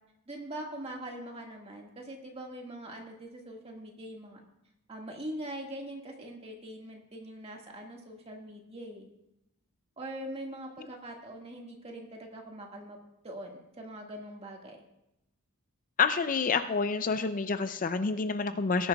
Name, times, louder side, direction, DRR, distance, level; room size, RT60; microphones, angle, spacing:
voice 1, 0.3-4.4 4.9-9.1 10.0-13.0 13.2-13.5 13.8-14.8, right 1 dB, 25° right, 1 dB, 1.8 m, -42 dB
voice 2, 16.0-18.9, left 5 dB, 35° left, 10 dB, 0.5 m, -28 dB
19.5 x 10.5 x 2.3 m, 0.85 s
head